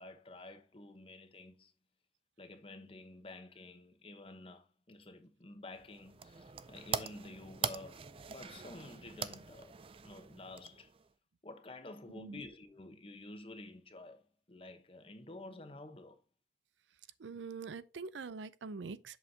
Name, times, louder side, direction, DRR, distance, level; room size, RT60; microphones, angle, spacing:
voice 1, 0.0-1.7 2.4-9.8 10.0-10.9 11.4-14.2 14.5-16.2, left 2 dB, 30° left, 0.9 m, -50 dB
sound 1, 5.7-11.1, right 6 dB, 30° right, 0.4 m, -42 dB
voice 2, 17.2-19.2, right 4 dB, 85° right, 0.5 m, -44 dB
7.9 x 6.4 x 2.8 m
head